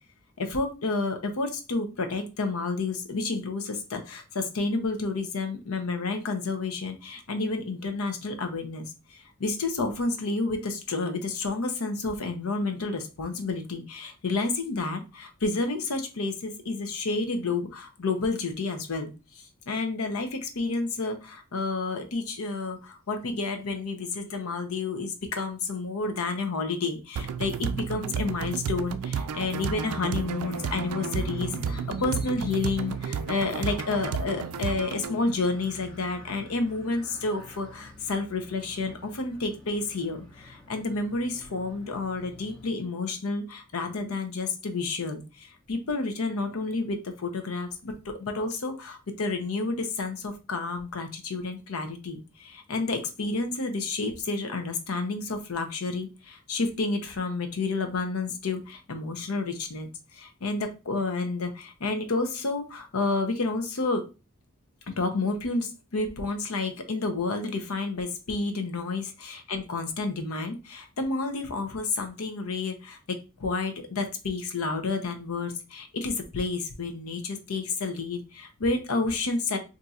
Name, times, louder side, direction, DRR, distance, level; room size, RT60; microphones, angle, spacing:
voice 1, 0.4-64.1 65.0-79.6, left 3 dB, 80° left, 6 dB, 0.7 m, -30 dB
sound 1, 27.2-35.2, right 6 dB, 85° right, 0.3 m, -32 dB
sound 2, 29.5-42.7, left 1 dB, 20° left, 0.8 m, -44 dB
2.6 x 2.4 x 4.1 m, 0.30 s
head